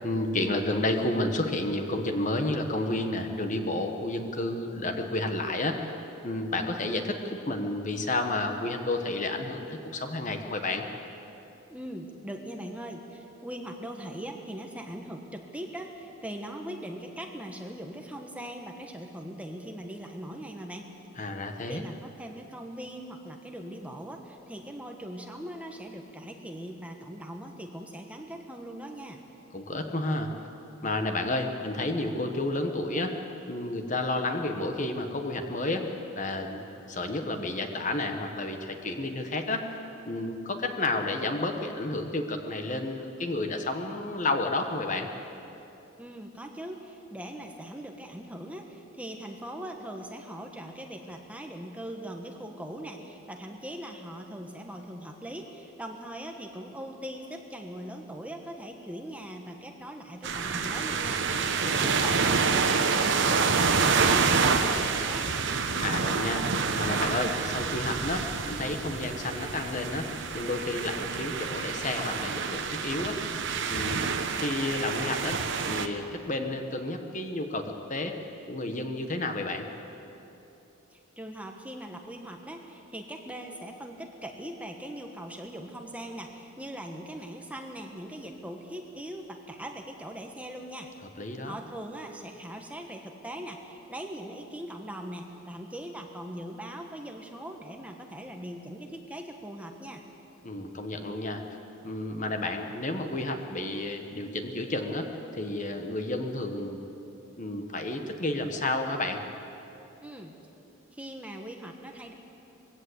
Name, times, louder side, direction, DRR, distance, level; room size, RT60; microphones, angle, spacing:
voice 1, 0.0-5.9 6.2-10.9 21.2-21.8 29.5-30.3 30.8-33.2 33.5-39.7 40.0-45.1 61.6-62.1 65.8-66.5 66.7-73.2 73.7-74.0 74.3-75.4 75.7-78.2 78.5-79.7 91.2-91.6 100.4-101.4 101.8-106.8 107.4-109.2, left 2 dB, 35° left, 5 dB, 1.3 m, -31 dB
voice 2, 11.7-20.9 21.7-29.2 46.0-61.2 61.8-65.3 80.9-90.9 91.4-100.0 110.0-110.4 110.9-112.1, right 1 dB, 5° right, 2 dB, 1.2 m, -41 dB
sound 1, 60.2-75.9, right 5 dB, 55° right, 1.1 m, -27 dB
21.0 x 16.0 x 8.1 m, 2.9 s
head